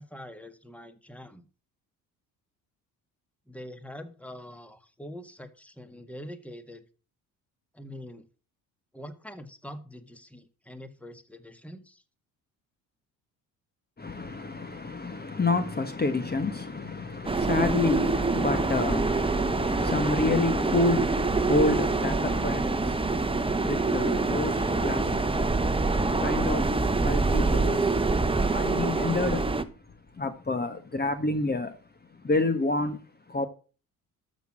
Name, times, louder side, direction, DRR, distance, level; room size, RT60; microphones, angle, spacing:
voice 1, 0.0-1.4 3.5-6.8 7.7-8.3 8.9-12.0, equal, 5° left, 1.8 m, -44 dB
voice 2, 14.0-29.5 30.1-31.8 32.2-33.0 33.3-33.5, left 3 dB, 25° left, 1.5 m, -29 dB
sound 1, 17.3-29.6, right 3 dB, 15° right, 1.3 m, -25 dB
12.5 x 6.6 x 6.3 m
hypercardioid pair, 60°, 41 cm